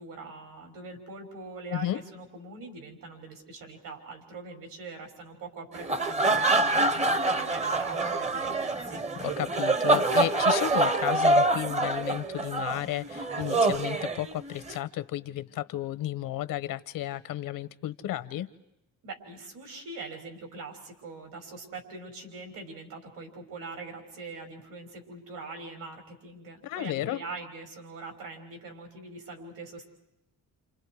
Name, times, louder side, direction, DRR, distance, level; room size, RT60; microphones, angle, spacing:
voice 1, 0.0-9.0 19.0-29.8, right 3 dB, 75° right, 3 dB, 6.3 m, -43 dB
sound 1, 5.7-14.8, right 2 dB, 20° right, 0.8 m, -26 dB
voice 2, 9.2-18.5 26.6-27.2, left 13 dB, 85° left, 15 dB, 1.2 m, -33 dB
29.5 x 28.5 x 4.9 m, 0.85 s
cardioid pair, 150°, 33 cm